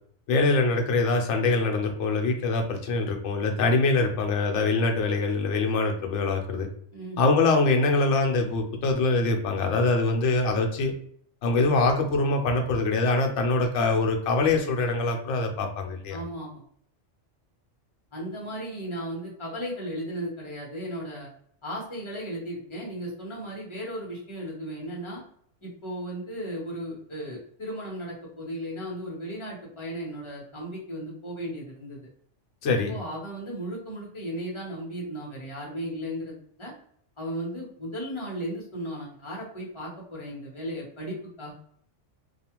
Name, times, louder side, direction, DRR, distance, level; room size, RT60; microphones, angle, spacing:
voice 1, 0.3-6.7 7.2-10.9 11.4-16.2 32.6-33.0, left 3 dB, 75° left, 3 dB, 0.9 m, -24 dB
voice 2, 16.1-16.6 18.1-21.3 21.6-25.2 25.6-32.0 32.9-36.7 37.2-41.5, equal, 25° left, -4 dB, 0.9 m, -35 dB
2.4 x 2.3 x 2.9 m, 0.63 s
omnidirectional pair, 1.3 m